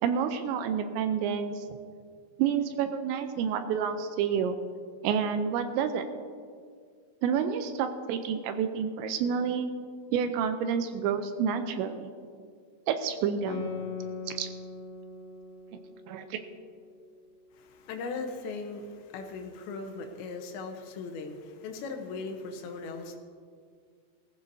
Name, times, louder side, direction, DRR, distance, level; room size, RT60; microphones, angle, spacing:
voice 1, 0.0-1.6 2.4-4.6 5.0-6.1 7.2-9.7 10.1-12.1 12.9-13.7 14.3-14.5 16.1-16.4, right 7 dB, 80° right, 8 dB, 2.8 m, -29 dB
Guitar, 13.5-18.4, left 4 dB, 60° left, 3.8 m, -41 dB
voice 2, 17.5-23.2, left 4 dB, 75° left, 4 dB, 3.1 m, -38 dB
19.5 x 15.0 x 2.7 m, 2.1 s
omnidirectional pair, 5.4 m